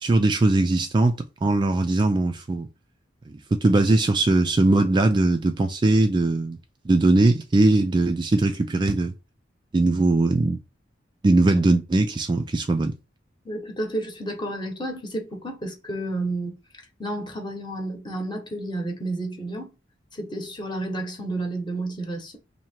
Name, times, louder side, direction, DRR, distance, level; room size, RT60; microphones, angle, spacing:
voice 1, 0.0-1.1 1.4-2.7 3.3-6.6 6.9-9.1 9.7-10.6 11.2-12.9, right 2 dB, 25° right, 0.3 m, -20 dB
voice 2, 13.4-16.6 17.0-19.7 20.1-22.4, right 1 dB, 25° left, 1.0 m, -31 dB
2.8 x 2.8 x 4.3 m
head